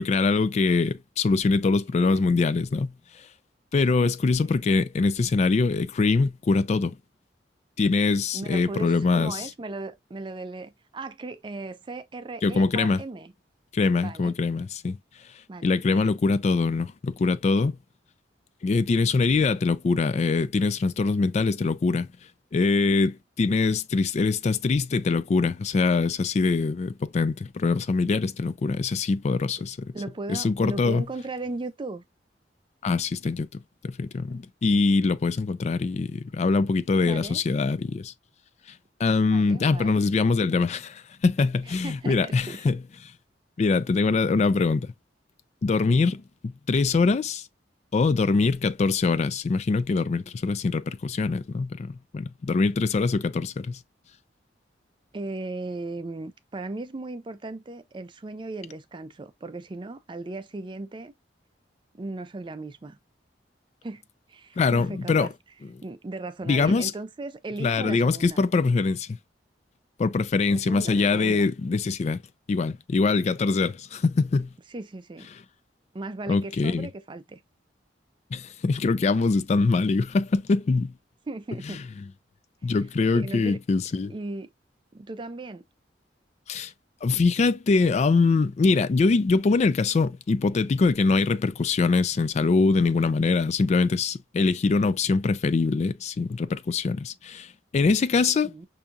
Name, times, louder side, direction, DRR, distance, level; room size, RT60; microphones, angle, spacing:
voice 1, 0.0-2.9 3.7-7.0 7.8-9.5 12.4-13.0 13.7-15.0 15.6-17.8 18.6-22.1 22.5-29.9 30.3-31.0 32.8-38.1 39.0-42.8 43.6-44.9 45.6-47.5 47.9-53.8 64.6-65.3 66.5-66.9 67.6-69.2 70.0-72.2 72.5-74.5 76.3-76.9 78.3-80.9 82.6-84.1 86.5-86.7 87.0-98.7, left 4 dB, 40° left, 0.3 m, -23 dB
voice 2, 8.3-13.3 13.9-14.3 15.5-16.0 29.9-32.0 37.0-37.4 39.3-40.0 41.8-42.8 55.1-61.1 61.9-63.0 63.8-64.0 64.3-65.3 65.8-68.4 70.5-71.5 74.7-75.3 75.9-77.4 81.3-81.8 83.1-83.6 84.1-84.5 84.9-85.6 98.4-98.7, right 2 dB, 25° right, 0.4 m, -37 dB
5.7 x 2.7 x 2.4 m
head